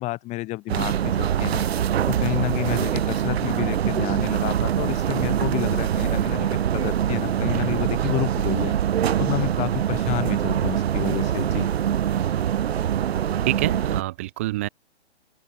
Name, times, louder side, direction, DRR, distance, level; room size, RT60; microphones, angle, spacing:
voice 1, 0.0-1.6 2.1-8.7 9.2-11.7, left 19 dB, 20° left, 6.4 m, -30 dB
sound 1, 0.7-14.0, right 10 dB, 65° right, 0.7 m, -24 dB
voice 2, 13.5-14.7, right 17 dB, 15° right, 0.5 m, -26 dB
open air
hypercardioid pair, 155°, 34 cm